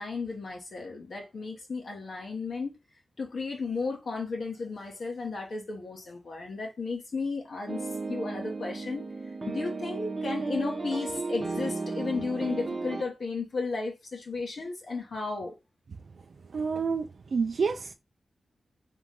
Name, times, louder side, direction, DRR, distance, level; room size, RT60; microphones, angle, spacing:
voice 1, 0.0-2.8 3.2-9.1 9.5-15.5, left 4 dB, 65° left, 1.2 m, -34 dB
sound 1, 7.7-13.0, right 3 dB, 30° right, 0.8 m, -34 dB
voice 2, 16.5-17.9, right 5 dB, 65° right, 0.4 m, -29 dB
3.6 x 3.1 x 3.6 m
wide cardioid pair, 95°, 0 cm